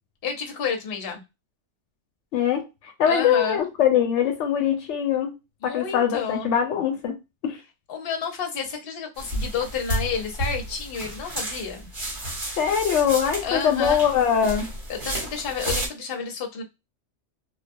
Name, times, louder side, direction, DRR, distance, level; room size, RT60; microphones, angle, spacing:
voice 1, 0.2-1.2 3.0-3.7 5.6-6.5 7.9-11.9 13.4-14.0 14.9-16.6, left 6 dB, 55° left, 0.9 m, -30 dB
voice 2, 2.3-5.4 5.6-7.2 7.4-7.6 12.6-14.7, left 8 dB, 80° left, 0.9 m, -22 dB
sound 1, 9.2-15.9, right 1 dB, 50° right, 1.2 m, -32 dB
2.4 x 2.2 x 2.5 m
omnidirectional pair, 1.2 m